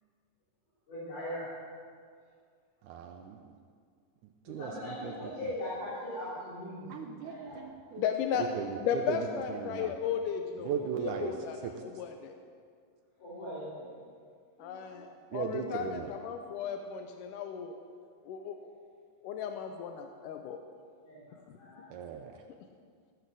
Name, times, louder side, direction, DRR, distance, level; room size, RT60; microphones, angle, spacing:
voice 1, 0.9-1.5 4.5-7.6 13.2-14.0 21.0-22.0, left 1 dB, 70° left, -10 dB, 5.0 m, -40 dB
voice 2, 2.8-3.5 4.5-5.1 6.9-8.1 8.4-9.9 10.6-11.3 11.6-11.7 14.6-15.1 15.3-16.1 21.9-22.4, right 8 dB, 80° right, 4 dB, 2.0 m, -38 dB
voice 3, 8.0-8.5 8.8-12.3 14.6-17.8 18.3-18.6 19.2-20.6, left 8 dB, 90° left, 5 dB, 2.2 m, -35 dB
15.0 x 6.8 x 6.2 m, 2.1 s
omnidirectional pair, 3.7 m